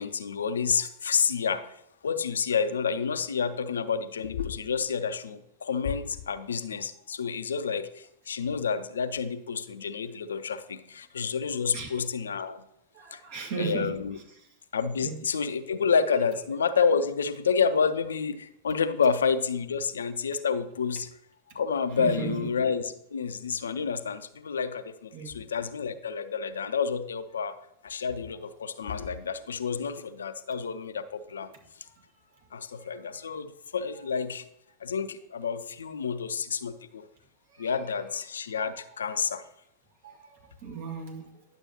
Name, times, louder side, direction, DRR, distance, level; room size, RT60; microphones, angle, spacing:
voice 1, 0.0-1.7 2.0-12.6 13.1-13.2 13.6-14.2 14.7-21.1 21.5-31.5 32.5-34.4 34.8-37.1 37.6-39.5, left 6 dB, 70° left, 12 dB, 0.5 m, -29 dB
voice 2, 12.9-13.9 14.4-14.5 15.0-15.2 22.0-22.5 25.1-25.4 32.7-33.0 37.5-37.7 38.8-38.9 40.0-41.3, right 6 dB, 50° right, 1 dB, 1.9 m, -36 dB
10.5 x 6.8 x 2.9 m, 0.77 s
figure-of-eight pair, 90°, 0 cm